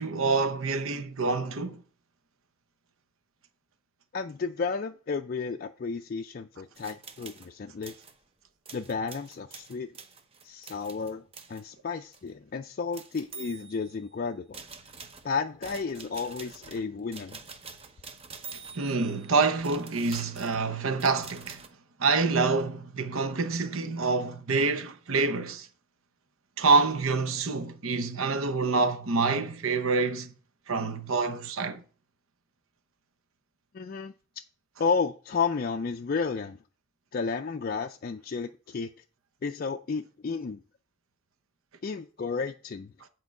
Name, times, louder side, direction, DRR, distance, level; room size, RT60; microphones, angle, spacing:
voice 1, 0.0-1.8 18.7-21.7 22.0-25.7 26.6-30.3 30.7-31.8, right 4 dB, 70° right, 0.8 m, -27 dB
voice 2, 4.1-7.9 8.7-9.9 10.4-11.2 11.5-14.6 15.2-17.4 33.7-34.1 34.8-36.6 37.1-38.9 39.4-40.6 41.8-42.9, left 5 dB, 40° left, 0.4 m, -32 dB
sound 1, 6.7-7.5 7.8-8.2 8.6-11.6 12.1-12.3 12.9-14.1 14.5-21.7, right 5 dB, 25° right, 0.7 m, -46 dB
8.6 x 4.5 x 5.3 m
head